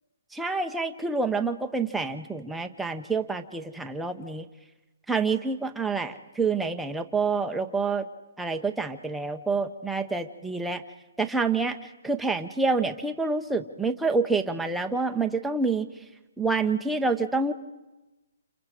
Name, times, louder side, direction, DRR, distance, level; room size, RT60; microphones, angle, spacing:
voice 1, 0.3-4.5 5.1-8.0 8.4-10.8 11.2-11.8 12.0-15.9 16.4-17.5, right 4 dB, ahead, 4 dB, 0.8 m, -27 dB
29.5 x 29.0 x 4.9 m, 1.1 s
hypercardioid pair, 170°, 0 cm